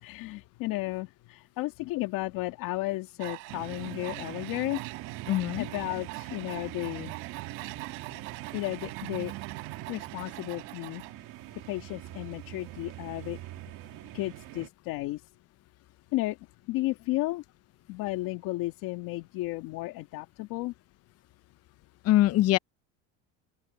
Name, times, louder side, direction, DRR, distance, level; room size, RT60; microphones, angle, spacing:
voice 1, 0.0-4.8 5.6-7.1 8.5-9.3 9.9-11.0 11.7-13.4 14.1-15.2 16.1-16.4 16.7-17.4 17.9-20.7, left 19 dB, 65° left, 2.1 m, -33 dB
Tools, 3.2-11.1, right 35 dB, 80° right, 5.7 m, -44 dB
sound 1, 3.5-14.7, right 17 dB, 60° right, 2.5 m, -42 dB
voice 2, 5.3-5.7 22.0-22.6, left 15 dB, 45° left, 0.6 m, -23 dB
open air
cardioid pair, 125°, 36 cm